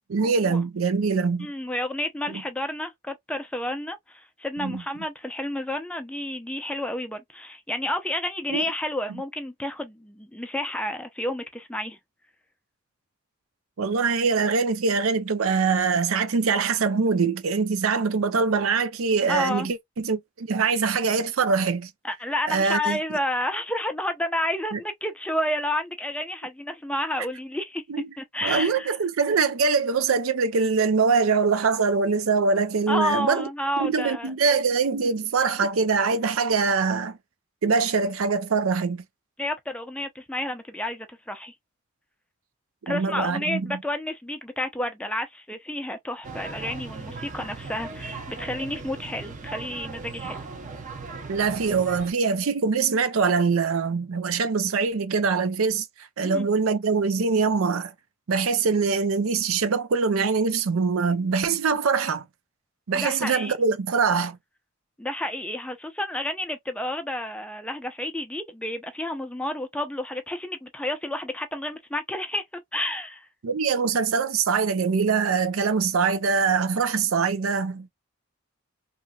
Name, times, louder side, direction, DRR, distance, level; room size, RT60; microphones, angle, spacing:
voice 1, 0.1-1.5 2.3-2.4 4.6-4.8 8.5-8.6 13.8-21.9 22.5-23.0 24.7-24.8 27.9-28.0 28.4-33.5 33.8-37.2 37.6-39.0 42.9-43.8 51.3-55.9 56.2-57.9 58.3-62.3 62.9-64.4 73.4-77.9, right 5 dB, 90° right, 0.5 m, -23 dB
voice 2, 1.4-12.0 19.3-19.7 22.0-27.8 28.2-29.0 32.9-34.3 39.4-41.5 42.9-50.4 56.2-56.5 62.9-63.5 65.0-73.3, left 1 dB, 5° left, 0.5 m, -30 dB
sound 1, 46.2-52.1, right 4 dB, 40° right, 0.6 m, -38 dB
3.0 x 2.6 x 2.2 m
head